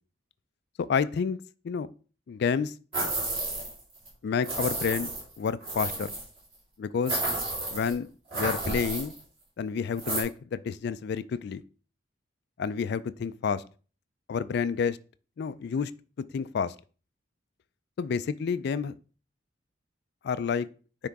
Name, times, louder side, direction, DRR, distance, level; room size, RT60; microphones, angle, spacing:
voice 1, 0.8-1.4 1.6-1.9 2.3-2.7 4.2-5.1 5.4-6.1 6.8-7.2 7.7-9.1 9.6-11.6 12.6-13.6 14.3-15.0 15.4-15.9 16.3-16.7 18.0-18.9 20.2-20.7, left 6 dB, 60° left, 0.3 m, -29 dB
sound 1, 2.9-3.8 4.0-4.1 4.4-6.3 7.0-7.9 8.3-9.2 10.0-10.2, right 2 dB, 35° right, 3.9 m, -31 dB
9.6 x 3.7 x 3.5 m
head